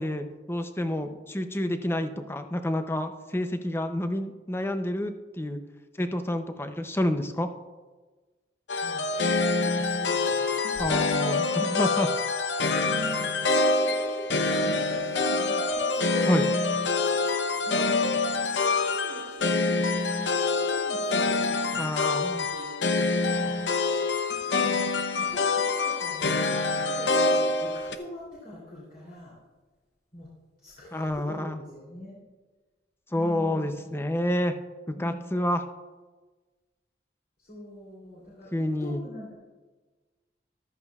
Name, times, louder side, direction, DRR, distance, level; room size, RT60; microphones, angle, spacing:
voice 1, 0.0-5.6 6.0-7.5 10.8-12.1 16.3-16.5 21.8-22.5 30.9-31.6 33.1-34.5 34.9-35.6 38.5-39.0, left 1 dB, 15° left, 7 dB, 0.6 m, -28 dB
voice 2, 0.8-1.2 8.8-11.1 11.8-12.2 12.8-16.7 17.6-18.2 18.8-23.6 23.9-24.0 24.3-24.8 25.2-26.3 26.6-29.4 30.1-30.3 30.6-32.2 33.1-33.7 34.9-35.4 37.4-39.3, left 1 dB, 50° left, -7 dB, 3.1 m, -44 dB
sound 1, 8.7-27.9, left 3 dB, 75° left, 0.7 m, -26 dB
14.0 x 12.5 x 2.4 m, 1.3 s
head